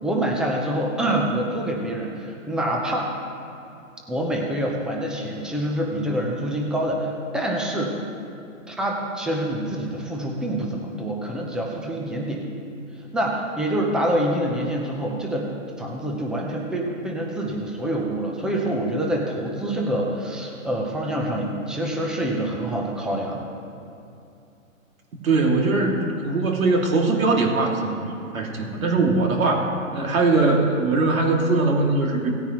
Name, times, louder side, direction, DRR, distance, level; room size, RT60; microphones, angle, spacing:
voice 1, 0.0-3.1 4.1-8.0 8.7-12.5 13.1-15.5 15.8-23.4, right 1 dB, ahead, -1 dB, 0.5 m, -26 dB
voice 2, 25.2-28.0 28.3-32.3, right 3 dB, 75° right, 1 dB, 2.3 m, -21 dB
17.5 x 9.6 x 3.0 m, 2.7 s
hypercardioid pair, 140°, 41 cm